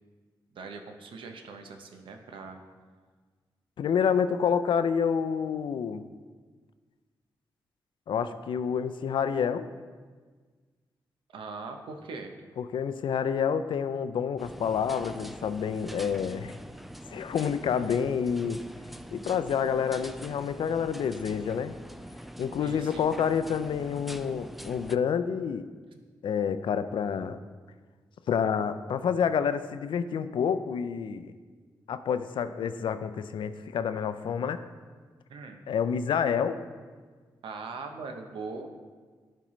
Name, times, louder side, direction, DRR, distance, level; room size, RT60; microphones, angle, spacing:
voice 1, 0.5-2.6 11.3-12.3 22.6-23.1 35.3-35.6 37.4-38.7, right 4 dB, 85° right, 5 dB, 0.7 m, -41 dB
voice 2, 3.8-6.0 8.1-9.7 12.6-16.6 17.1-18.6 19.1-21.7 22.4-25.6 26.2-27.4 28.3-31.3 31.9-34.6 35.7-36.6, left 7 dB, 75° left, 12 dB, 0.4 m, -28 dB
sound 1, 14.4-25.0, equal, ahead, 0.3 m, -44 dB
11.5 x 4.5 x 3.1 m, 1.5 s
cardioid pair, 55°, 8 cm